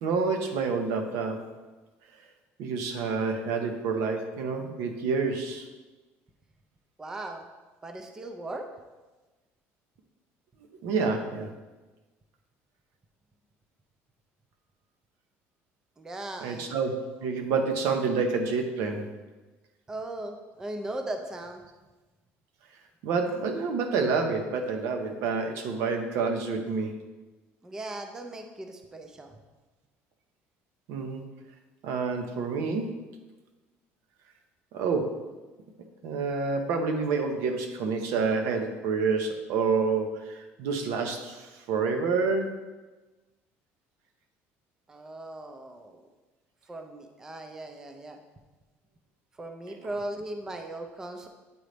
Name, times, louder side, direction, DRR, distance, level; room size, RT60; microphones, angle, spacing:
voice 1, 0.0-1.5 2.6-5.7 10.8-11.5 16.4-19.1 23.0-27.0 30.9-31.2 31.8-33.0 34.7-35.2 36.0-42.6, right 4 dB, 75° right, 5 dB, 0.8 m, -28 dB
voice 2, 7.0-7.5 7.8-8.7 16.0-16.8 19.9-21.6 27.6-29.4 44.9-46.1 46.7-48.2 49.4-51.3, right 1 dB, 10° right, 4 dB, 0.4 m, -38 dB
8.7 x 3.9 x 3.3 m, 1.2 s
cardioid pair, 165°, 5 cm